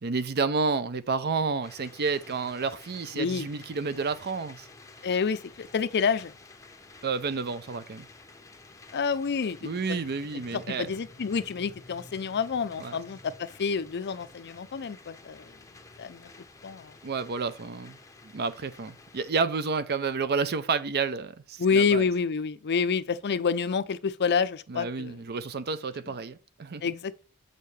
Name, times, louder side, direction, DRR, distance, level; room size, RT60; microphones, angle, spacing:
voice 1, 0.0-4.7 7.0-8.1 9.6-10.9 12.8-13.0 17.0-18.0 18.2-22.0 24.7-26.8, right 4 dB, 45° right, 0.6 m, -30 dB
sound 1, 1.6-19.3, left 3 dB, 15° left, 0.7 m, -51 dB
voice 2, 3.1-3.5 5.0-6.3 8.9-9.6 9.9-10.1 10.5-15.4 16.0-16.3 16.6-16.9 21.6-25.2 26.8-27.2, left 5 dB, 50° left, 0.5 m, -28 dB
7.2 x 6.6 x 3.3 m
head